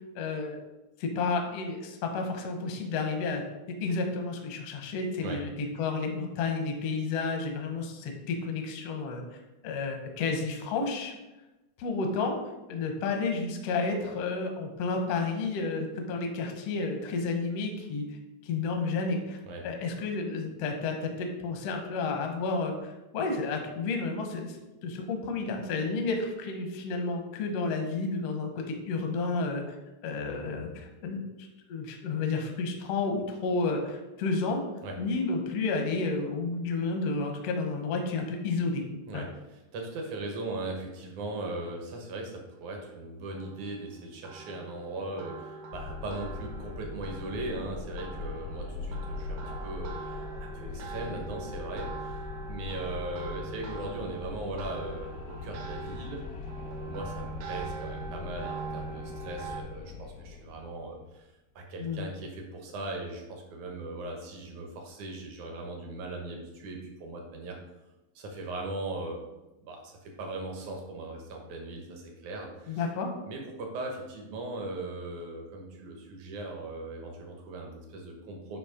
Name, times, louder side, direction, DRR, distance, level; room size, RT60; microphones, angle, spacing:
voice 1, 0.1-0.6 1.0-9.2 9.6-11.1 11.8-12.4 12.7-18.0 18.4-19.4 19.6-24.6 24.8-29.7 30.0-34.6 35.0-38.9 39.1-39.3 61.8-62.1 72.7-73.1, left 3 dB, 70° left, 3 dB, 1.5 m, -31 dB
voice 2, 39.1-52.2 52.5-56.2 56.6-61.3 61.6-67.6 68.2-69.2 69.6-72.8 73.3-78.6, right 2 dB, 65° right, 1 dB, 2.2 m, -39 dB
sound 1, 43.1-59.6, right 4 dB, 85° right, 2.6 m, -43 dB
Wind, 45.7-61.1, left 4 dB, 90° left, 2.5 m, -41 dB
9.2 x 3.1 x 5.0 m, 1.0 s
omnidirectional pair, 4.1 m